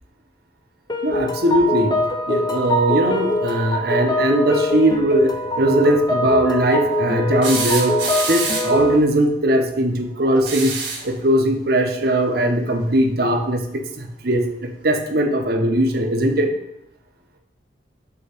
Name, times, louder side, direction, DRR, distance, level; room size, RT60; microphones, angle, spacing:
sound 1, 0.9-9.0, left 1 dB, 25° left, 0.5 m, -23 dB
voice 1, 1.0-1.9 2.3-7.9 8.3-10.7 11.0-13.6 14.2-14.4 14.8-16.5, right 1 dB, 55° right, 4 dB, 0.8 m, -19 dB
sound 2, 7.4-8.8 10.4-11.1 12.8-12.9 14.4-14.5, right 4 dB, 75° right, 1.5 m, -26 dB
6.9 x 2.9 x 4.9 m, 0.84 s
head